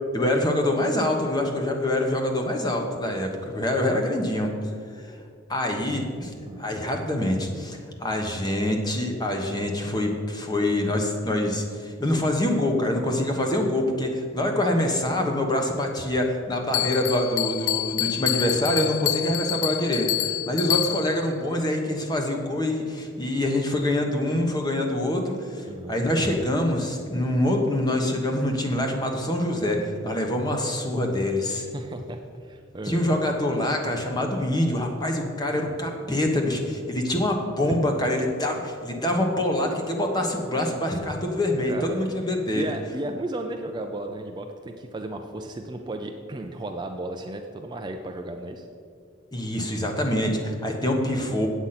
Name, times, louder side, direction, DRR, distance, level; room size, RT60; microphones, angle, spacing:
voice 1, 0.1-4.5 5.5-6.3 6.6-31.7 32.8-42.7 49.3-51.5, left 1 dB, 20° left, 2 dB, 1.1 m, -25 dB
Bell, 16.7-21.3, left 16 dB, 80° left, 0.4 m, -27 dB
voice 2, 25.7-26.0 31.7-33.0 37.7-38.0 41.7-42.1 42.5-48.7, right 1 dB, 20° right, 4 dB, 0.5 m, -34 dB
8.3 x 8.1 x 5.8 m, 2.2 s
head